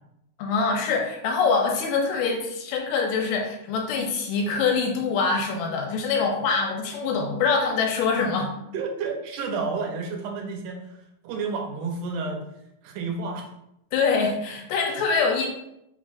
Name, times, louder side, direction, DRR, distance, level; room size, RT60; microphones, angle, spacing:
voice 1, 0.4-8.5 13.9-15.5, left 4 dB, 90° left, 1 dB, 2.2 m, -24 dB
voice 2, 8.7-10.8 11.2-12.4 12.8-13.5, right 4 dB, 80° right, 2 dB, 2.1 m, -30 dB
5.0 x 3.6 x 2.4 m, 0.81 s
omnidirectional pair, 3.8 m